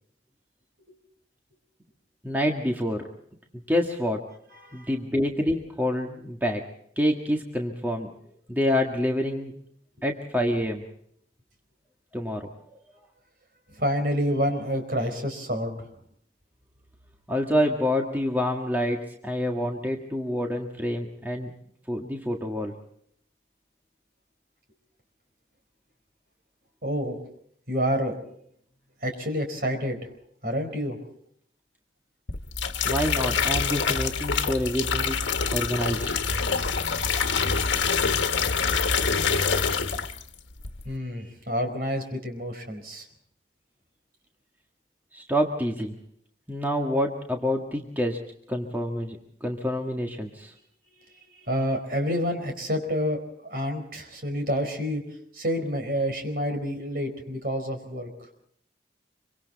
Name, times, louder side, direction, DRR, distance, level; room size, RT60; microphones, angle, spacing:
voice 1, 2.2-3.1 3.7-4.3 4.7-6.6 7.0-8.1 8.5-9.6 10.0-10.8 12.1-12.5 17.3-21.5 21.9-22.7 32.8-36.1 45.1-46.0 46.5-50.5, equal, 10° right, 1 dB, 1.8 m, -27 dB
voice 2, 4.5-4.9 13.7-15.9 26.8-27.3 27.7-28.2 29.0-30.0 30.4-31.0 40.8-43.1 51.0-55.0 55.3-58.3, equal, 50° right, 5 dB, 4.6 m, -28 dB
sound 1, 32.3-40.3 40.6-41.0, left 5 dB, 90° left, 1.4 m, -26 dB
26.0 x 25.0 x 4.1 m, 0.68 s
head